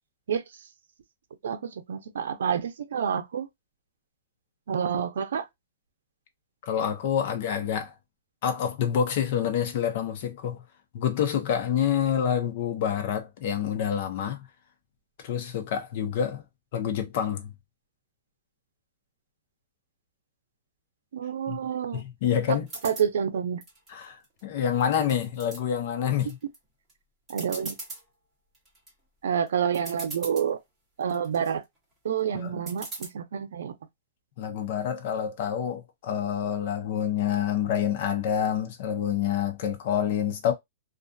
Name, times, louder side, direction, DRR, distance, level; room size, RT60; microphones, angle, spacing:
voice 1, 1.4-3.5 4.7-5.5 21.1-22.0 22.5-22.6 22.8-23.6 27.3-27.7 29.2-30.6 31.0-31.6 32.0-33.7, right 7 dB, 90° right, 0.5 m, -28 dB
voice 2, 6.6-7.9 8.4-10.6 10.9-14.4 15.2-16.4 16.7-17.5 21.5-21.6 21.9-22.7 23.9-26.4 32.3-32.6 34.4-40.5, left 9 dB, 40° left, 0.6 m, -27 dB
sound 1, 22.7-23.1 23.6-24.4 24.8-25.6 26.1-26.6 26.9-27.0 27.3-28.0 28.5-28.9 29.5-29.6 29.7-30.5 31.0-31.5 32.7-33.1, right 2 dB, 10° right, 1.1 m, -40 dB
2.4 x 2.3 x 2.5 m
supercardioid pair, 175°, 0 cm